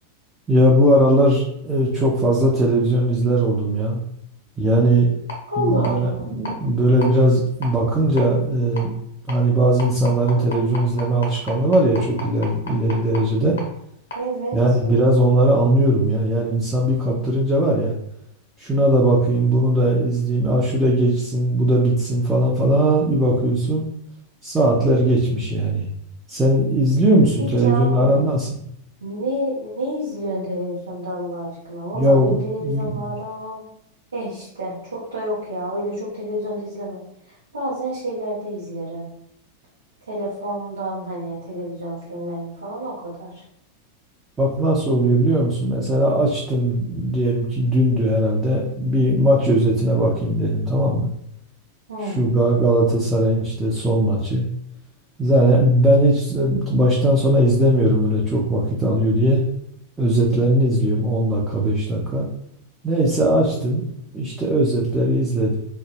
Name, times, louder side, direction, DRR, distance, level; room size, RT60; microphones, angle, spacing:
voice 1, 0.5-4.0 4.6-5.1 5.6-8.9 9.3-13.6 14.5-17.9 18.6-23.9 24.4-25.9 26.3-28.5 31.9-32.9 44.4-51.1 52.0-54.4 55.2-59.4 60.0-62.3 62.8-63.8 64.1-65.6, right 1 dB, 15° right, -4 dB, 0.5 m, -19 dB
sound 1, 5.3-5.4 5.8-5.9 6.4-6.5 7.0-7.1 7.6-7.7 8.2-8.3 8.8-8.9 9.3-9.4 9.8-13.2 13.6-13.7 14.1-14.2, equal, 65° left, 0.6 m, -31 dB
voice 2, 5.5-6.3 14.1-14.8 27.4-28.3 29.0-33.7 34.1-39.1 40.1-43.4 51.9-52.2, equal, 75° right, -7 dB, 0.7 m, -29 dB
2.1 x 2.0 x 3.2 m, 0.75 s
figure-of-eight pair, 90°, 0 cm